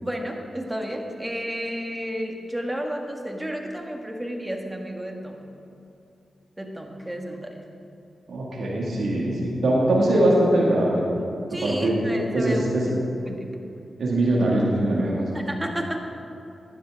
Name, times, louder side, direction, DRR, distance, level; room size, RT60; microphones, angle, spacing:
voice 1, 0.0-5.4 6.6-7.6 11.5-12.7 13.3-13.5 15.3-16.1, equal, 15° right, 2 dB, 1.7 m, -31 dB
voice 2, 8.3-11.0 11.6-12.0 12.3-12.8 14.0-15.2, right 1 dB, 75° right, -4 dB, 2.0 m, -21 dB
12.5 x 10.5 x 3.7 m, 2.7 s
supercardioid pair, 45°, 0 cm